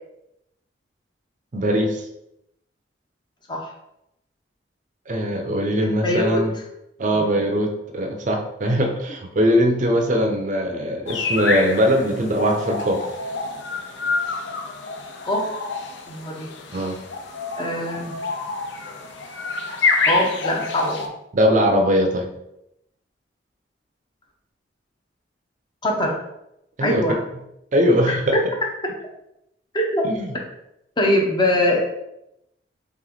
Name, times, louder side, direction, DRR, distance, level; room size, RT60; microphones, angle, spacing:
voice 1, 1.5-2.0 5.1-6.5 7.0-13.0 16.7-17.0 21.3-22.3 26.8-27.0 27.7-28.4 30.0-30.3, equal, 40° right, 3 dB, 0.5 m, -21 dB
voice 2, 5.8-6.4 7.1-7.2 15.2-15.5 16.1-16.5 17.6-18.2 20.1-21.1 25.8-26.2 26.8-27.2 28.1-28.4 29.7-30.0 31.0-31.8, left 1 dB, 25° left, 0 dB, 0.7 m, -22 dB
sound 1, 11.1-21.1, left 4 dB, 75° left, 0.5 m, -27 dB
3.5 x 3.1 x 3.8 m, 0.83 s
head